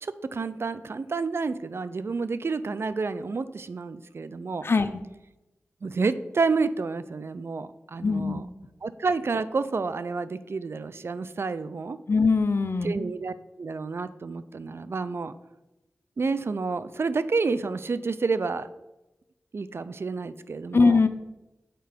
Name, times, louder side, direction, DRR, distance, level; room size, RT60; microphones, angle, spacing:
voice 1, 0.0-4.7 5.8-8.5 8.8-12.0 12.8-15.3 16.2-18.7 19.5-21.0, right 4 dB, 60° right, 14 dB, 0.4 m, -29 dB
voice 2, 8.0-8.4 12.1-13.0 20.7-21.1, left 4 dB, 55° left, 10 dB, 0.6 m, -21 dB
6.8 x 4.5 x 5.1 m, 0.98 s
cardioid pair, 50°, 5 cm